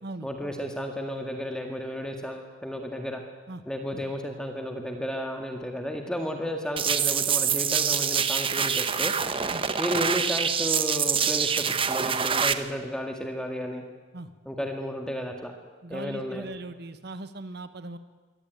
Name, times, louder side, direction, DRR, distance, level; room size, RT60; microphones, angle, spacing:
voice 1, 0.2-3.2 3.7-9.1 9.8-13.8 14.5-15.5 15.9-16.5, equal, 5° left, 3 dB, 1.9 m, -33 dB
sound 1, 6.8-12.5, right 7 dB, 30° right, 1.0 m, -25 dB
voice 2, 15.8-18.0, right 2 dB, 60° right, 11 dB, 1.4 m, -39 dB
24.0 x 17.5 x 9.2 m, 1.3 s
head